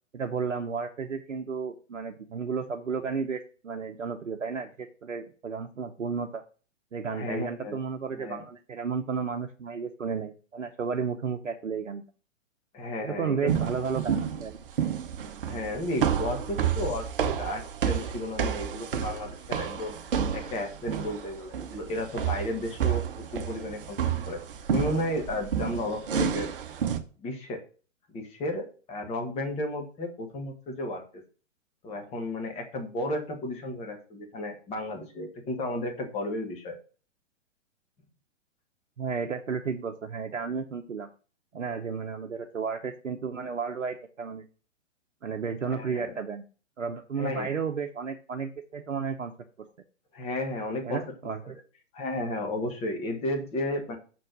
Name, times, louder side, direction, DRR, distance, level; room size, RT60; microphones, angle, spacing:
voice 1, 0.1-6.4 6.9-12.0 13.0-14.6 39.0-41.1 41.5-44.4 45.2-46.4 46.8-49.3 50.9-51.6, right 5 dB, 70° right, 4 dB, 0.8 m, -33 dB
voice 2, 7.1-7.8 8.1-8.4 12.7-13.5 15.5-19.9 20.3-23.0 23.3-24.0 24.2-24.4 24.7-26.5 27.2-27.6 28.1-31.2 31.8-36.7 45.7-46.1 47.2-47.5 50.1-51.0 51.4-51.5 51.9-54.0, left 1 dB, 15° left, 3 dB, 1.4 m, -33 dB
sound 1, 13.5-27.0, right 8 dB, 45° right, 0.9 m, -30 dB
6.1 x 4.4 x 6.1 m, 0.38 s
figure-of-eight pair, 120°, 38 cm